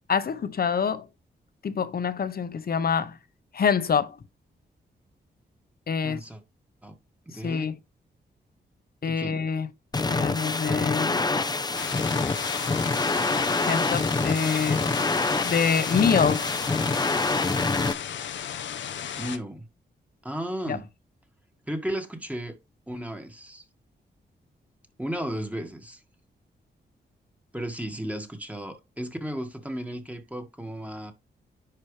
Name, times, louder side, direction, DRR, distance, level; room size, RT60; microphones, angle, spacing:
voice 1, 0.1-1.1 1.6-3.1 3.5-4.1 5.9-6.2 7.4-7.7 9.0-9.7 10.1-11.3 13.6-14.8 15.4-16.4 20.7-20.8, left 6 dB, 55° left, 1.0 m, -25 dB
voice 2, 6.0-6.4 6.8-7.0 7.2-7.7 9.0-9.5 14.5-15.3 19.2-19.6 20.2-20.9 21.7-22.6 22.9-23.6 25.0-26.0 27.5-31.1, right 1 dB, 5° right, 1.7 m, -34 dB
sound 1, 9.9-17.9, left 3 dB, 20° left, 0.7 m, -26 dB
sound 2, 11.7-19.4, left 9 dB, 85° left, 0.8 m, -35 dB
10.5 x 4.8 x 3.3 m
cardioid pair, 95°, 19 cm